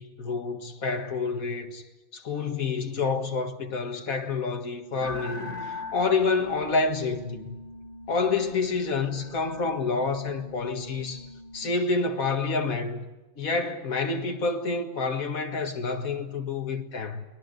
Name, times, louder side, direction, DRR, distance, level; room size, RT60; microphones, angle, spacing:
voice 1, 0.0-1.8 2.1-7.6 8.1-11.3 11.5-13.0 13.4-17.3, left 4 dB, 45° left, 2.1 m, -28 dB
sound 1, 5.0-11.6, left 2 dB, 65° left, 3.4 m, -42 dB
29.5 x 21.0 x 6.7 m
omnidirectional pair, 2.1 m